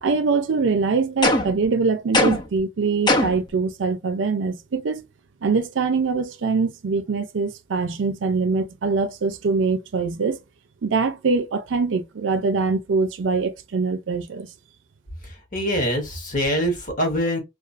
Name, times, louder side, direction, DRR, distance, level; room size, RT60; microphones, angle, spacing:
voice 1, 0.0-5.1 5.4-10.4 10.8-14.5, right 4 dB, 85° right, 0.5 m, -23 dB
sound 1, 1.2-1.7 2.1-2.6 3.1-3.5, left 1 dB, 25° left, 0.5 m, -20 dB
voice 2, 15.2-17.4, equal, 45° left, 1.0 m, -24 dB
2.4 x 2.3 x 2.4 m
head